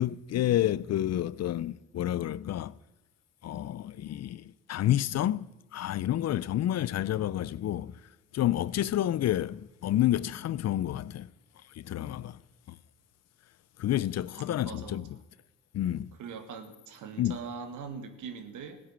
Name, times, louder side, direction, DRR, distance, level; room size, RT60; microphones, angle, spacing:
voice 1, 0.0-2.7 3.4-7.9 8.3-11.3 11.8-12.4 13.8-15.1 15.7-16.1 17.2-17.4, left 12 dB, 60° left, 0.6 m, -29 dB
voice 2, 14.6-15.0 16.2-18.8, right 5 dB, 80° right, 1.9 m, -41 dB
16.0 x 9.5 x 8.9 m
cardioid pair, 90°, 30 cm